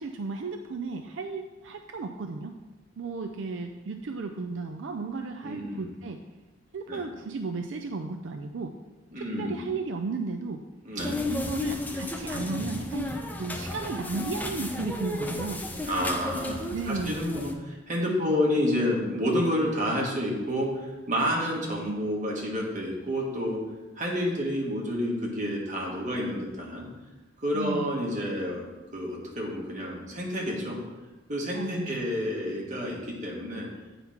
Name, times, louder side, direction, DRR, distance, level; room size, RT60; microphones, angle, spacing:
voice 1, 0.0-2.6 3.0-6.2 6.7-8.8 9.2-10.6 11.3-15.6 16.5-17.2 18.1-18.3 27.5-28.0 31.5-32.0, right 4 dB, 80° right, 5 dB, 0.5 m, -34 dB
voice 2, 5.4-5.9 6.9-7.0 9.1-9.6 10.9-11.2 15.9-23.6 24.0-26.9 27.4-28.6 28.9-30.8 31.3-33.7, equal, 40° right, -2 dB, 1.8 m, -29 dB
sound 1, 11.0-17.5, left 2 dB, 10° left, 0.6 m, -33 dB
8.5 x 4.1 x 5.7 m, 1.2 s
head